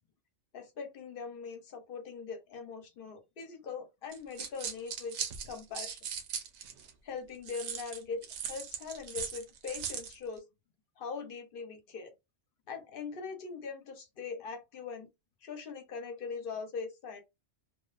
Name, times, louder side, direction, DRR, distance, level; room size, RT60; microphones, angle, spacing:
voice 1, 0.5-5.2 5.5-6.0 7.0-10.5 11.0-12.1 12.7-15.1 15.4-17.2, left 5 dB, 55° left, 0.8 m, -41 dB
sound 1, 4.1-6.9 7.5-10.2, right 7 dB, 75° right, 0.9 m, -39 dB
2.5 x 2.2 x 2.3 m
omnidirectional pair, 1.2 m